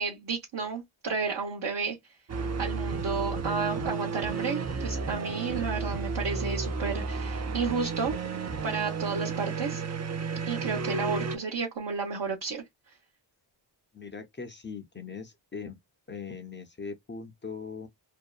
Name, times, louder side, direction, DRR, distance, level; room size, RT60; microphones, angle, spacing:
voice 1, 0.0-2.0 2.6-8.1 8.6-9.8 10.5-12.6, right 5 dB, 55° right, 1.0 m, -32 dB
sound 1, 2.3-11.4, right 4 dB, 35° right, 0.5 m, -32 dB
voice 2, 13.9-15.8 16.1-17.9, left 5 dB, 25° left, 0.5 m, -40 dB
2.7 x 2.2 x 2.3 m
wide cardioid pair, 95°, 48 cm